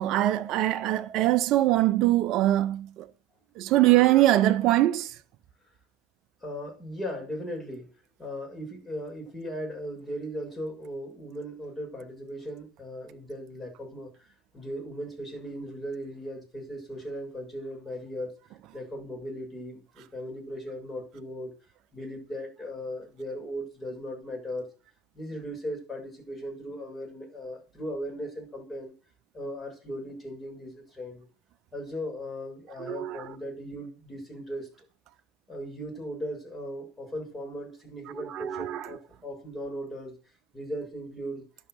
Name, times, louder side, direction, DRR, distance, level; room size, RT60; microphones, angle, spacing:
voice 1, 0.0-3.1 3.6-5.1 32.8-33.3 38.2-39.0, right 15 dB, 55° right, 0.7 m, -23 dB
voice 2, 6.4-7.9 8.2-14.1 14.5-18.4 18.7-21.5 21.9-24.7 25.1-28.9 29.3-31.3 31.7-34.9 35.5-40.1 40.5-41.5, equal, 15° left, 7.3 m, -37 dB
11.5 x 6.4 x 6.7 m
hypercardioid pair, 80°, 0 cm